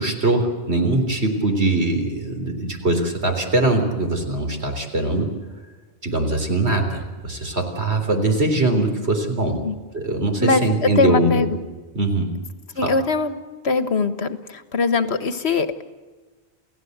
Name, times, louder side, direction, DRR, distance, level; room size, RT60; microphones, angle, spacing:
voice 1, 0.0-5.3 6.0-9.6 9.9-11.5 11.9-12.3 12.8-12.9, right 2 dB, 75° right, 4 dB, 4.1 m, -22 dB
voice 2, 10.4-11.6 12.7-13.3 13.6-15.7, left 4 dB, 75° left, 11 dB, 1.6 m, -21 dB
29.5 x 16.5 x 8.1 m, 1.3 s
omnidirectional pair, 1.1 m